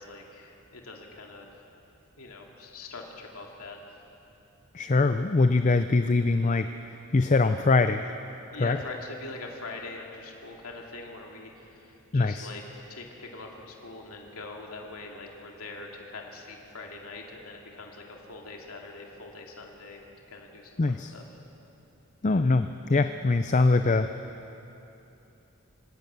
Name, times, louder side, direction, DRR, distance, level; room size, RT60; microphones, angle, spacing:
voice 1, 0.0-1.5 2.2-3.8 8.5-12.6 12.9-20.7 21.1-21.2, left 3 dB, 75° left, 0 dB, 2.5 m, -43 dB
voice 2, 4.7-6.7 7.1-8.1 8.6-8.8 12.1-12.5 20.8-21.1 22.2-24.1, left 3 dB, 35° left, 9 dB, 0.5 m, -23 dB
26.5 x 17.0 x 6.9 m, 3.0 s
head